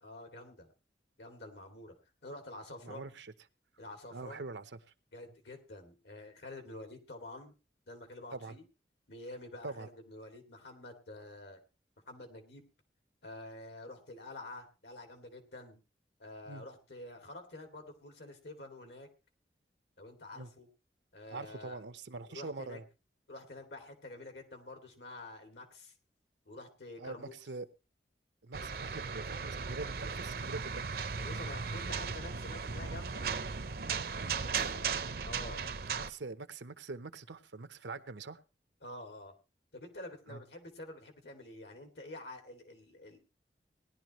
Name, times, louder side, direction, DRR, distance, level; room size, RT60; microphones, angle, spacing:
voice 1, 0.0-0.7 1.2-1.9 2.2-3.0 3.8-4.4 5.1-7.5 7.9-8.6 9.1-11.6 12.1-12.6 13.2-15.8 16.2-19.1 20.0-20.7 21.1-21.8 22.3-22.8 23.3-25.9 26.5-27.3 31.2-33.3 34.2-34.9 35.2-35.7 38.8-39.3 39.7-43.2, left 2 dB, 80° left, 4 dB, 2.6 m, -48 dB
voice 2, 2.8-3.3 4.1-4.8 8.3-8.6 9.6-9.9 16.5-16.6 20.3-20.5 21.3-22.8 27.0-27.7 28.4-30.9 34.4-34.7 36.0-38.4 40.3-40.4, right 3 dB, 85° right, 12 dB, 0.8 m, -44 dB
sound 1, 28.5-36.1, right 5 dB, 55° right, 0.6 m, -37 dB
18.5 x 11.0 x 3.1 m, 0.30 s
head